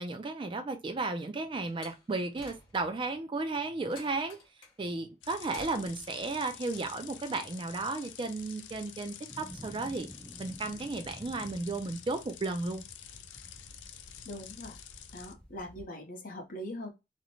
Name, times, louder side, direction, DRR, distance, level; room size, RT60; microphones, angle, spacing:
voice 1, 0.0-4.4 4.8-10.1 10.4-12.8, right 3 dB, 30° right, 0.3 m, -34 dB
Slam, 1.7-3.0 3.9-4.8 5.5-6.2, left 2 dB, 30° left, 1.0 m, -51 dB
sound 1, 5.2-15.3, left 10 dB, 80° left, 0.4 m, -49 dB
sound 2, 9.3-15.8, equal, 5° left, 0.8 m, -51 dB
voice 2, 14.2-14.8 15.1-16.9, left 1 dB, 50° left, 0.8 m, -41 dB
2.5 x 2.1 x 2.9 m
head